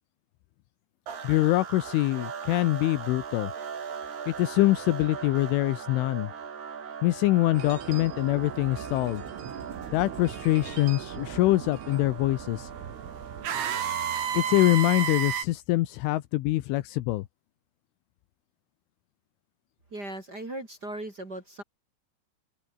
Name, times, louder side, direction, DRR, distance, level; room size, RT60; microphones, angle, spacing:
sound 1, 1.1-15.3, right 6 dB, 55° right, 6.0 m, -40 dB
voice 1, 1.2-3.5 4.3-6.3 7.0-9.2 9.9-12.7 14.3-17.3, left 17 dB, 80° left, 3.4 m, -24 dB
sound 2, 7.5-15.5, right 9 dB, 80° right, 6.0 m, -34 dB
voice 2, 19.9-21.6, right 1 dB, 25° right, 2.8 m, -38 dB
omnidirectional pair, 5.6 m